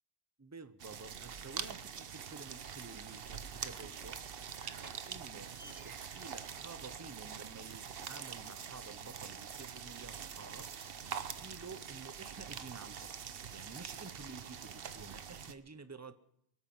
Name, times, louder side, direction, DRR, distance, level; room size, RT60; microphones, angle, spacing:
voice 1, 0.4-4.2 5.1-10.7 11.0-13.1 13.5-16.1, right 4 dB, 20° right, 12 dB, 0.6 m, -51 dB
sound 1, 0.8-15.5, right 7 dB, 55° right, 0.9 m, -45 dB
sound 2, 2.3-7.4, right 2 dB, 70° right, 2.1 m, -57 dB
24.0 x 8.7 x 6.0 m, 0.73 s
omnidirectional pair, 1.2 m